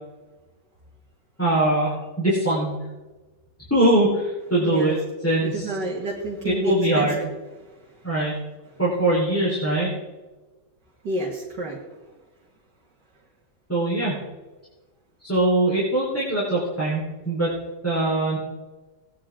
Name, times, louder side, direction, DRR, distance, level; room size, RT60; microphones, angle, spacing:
voice 1, 1.4-2.8 3.7-5.0 5.2-5.6 6.4-7.2 8.0-8.4 8.8-9.9 13.7-14.2 15.2-17.5 17.8-18.4, right 1 dB, 5° left, -7 dB, 4.2 m, -22 dB
voice 2, 4.6-5.0 5.4-7.3 7.6-8.1 8.7-8.8 11.0-11.8, right 1 dB, 65° right, -3 dB, 2.5 m, -30 dB
18.0 x 10.5 x 3.8 m, 1.2 s
omnidirectional pair, 2.0 m